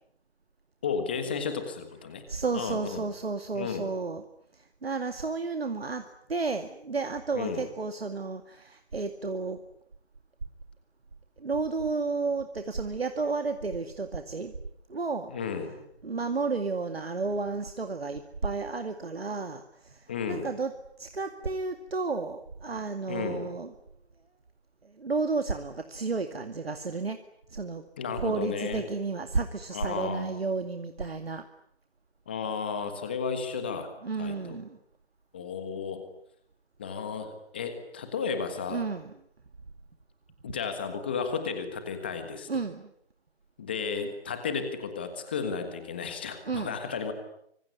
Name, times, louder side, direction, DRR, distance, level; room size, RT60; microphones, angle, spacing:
voice 1, 0.8-2.2 2.5-3.0 3.5-3.9 7.3-7.6 15.3-15.7 20.1-20.5 23.1-23.5 28.0-28.8 29.7-30.3 32.3-33.9 34.2-34.6 35.3-36.0 36.8-38.8 40.4-42.6 43.6-47.1, left 5 dB, 10° left, 8 dB, 1.5 m, -33 dB
voice 2, 2.3-4.2 4.8-6.0 6.3-9.6 11.4-14.5 14.9-15.3 16.0-20.7 21.0-23.7 25.0-27.2 27.5-27.8 28.1-31.4 34.0-34.8 38.7-39.1 42.5-42.9 46.5-46.7, right 4 dB, 65° right, 7 dB, 2.3 m, -32 dB
25.5 x 24.0 x 9.6 m, 0.72 s
figure-of-eight pair, 175°, 33 cm